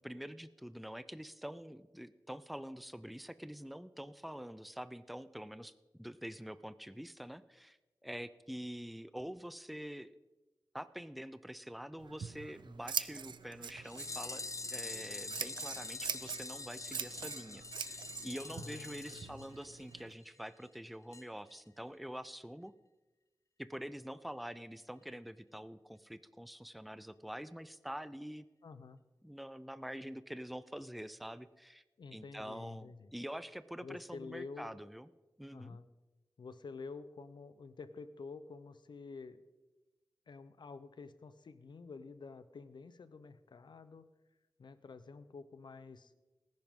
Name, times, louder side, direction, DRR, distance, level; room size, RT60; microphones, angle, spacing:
voice 1, 0.0-10.1 10.7-14.4 14.7-22.7 23.6-28.5 29.2-31.8 32.1-35.1 35.4-35.8, equal, ahead, 14 dB, 0.5 m, -46 dB
Scissors, 12.0-20.1, right 6 dB, 90° right, 0.4 m, -44 dB
sound 1, 13.8-20.0 20.3-20.4 20.6-20.7 21.1-21.2 21.5-21.6, left 3 dB, 45° left, 0.7 m, -45 dB
voice 2, 18.5-19.4 28.6-29.0 32.0-33.1 33.8-34.8 35.5-35.9 36.4-39.4 40.3-44.1 44.6-46.1, left 4 dB, 80° left, 13 dB, 0.7 m, -49 dB
18.5 x 10.5 x 3.7 m, 1.1 s
wide cardioid pair, 70°, 8 cm